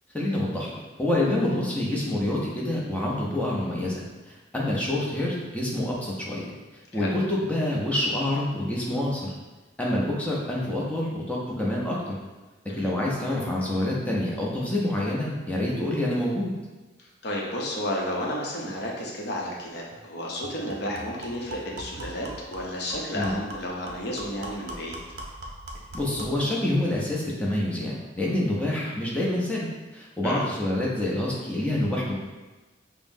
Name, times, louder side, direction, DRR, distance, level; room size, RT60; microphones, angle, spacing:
voice 1, 0.1-0.7 1.0-4.0 4.5-6.5 6.9-9.3 9.8-12.2 12.7-16.5 23.1-23.3 25.9-29.7 29.9-32.2, left 1 dB, 5° left, -5 dB, 0.6 m, -27 dB
voice 2, 17.2-24.9 30.2-30.4, left 1 dB, 60° left, -2 dB, 0.7 m, -32 dB
sound 1, 19.9-20.0 20.4-26.4, right 1 dB, 55° right, 0.5 m, -41 dB
5.4 x 2.0 x 2.6 m, 1.2 s
head